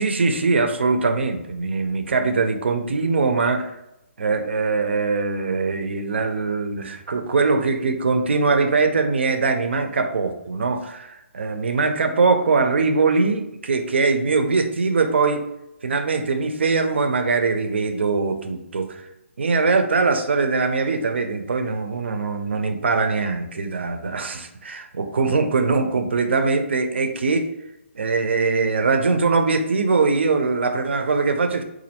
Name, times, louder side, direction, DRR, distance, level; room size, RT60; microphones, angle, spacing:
voice 1, 0.0-3.7 4.2-15.4 15.8-19.1 19.4-27.5 27.9-31.6, right 4 dB, 55° right, 7 dB, 0.5 m, -22 dB
4.1 x 2.5 x 2.8 m, 0.89 s
hypercardioid pair, 175°, 7 cm